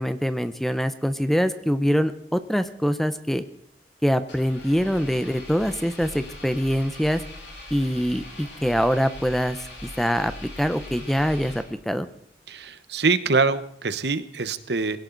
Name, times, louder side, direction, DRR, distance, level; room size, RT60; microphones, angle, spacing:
voice 1, 0.0-3.4 4.0-7.2 7.7-12.1, equal, ahead, 11 dB, 0.7 m, -24 dB
Engine, 4.3-12.0, left 1 dB, 85° left, 7.0 m, -41 dB
voice 2, 12.5-15.0, right 4 dB, 70° right, 13 dB, 1.1 m, -24 dB
20.5 x 17.0 x 4.0 m, 0.68 s
head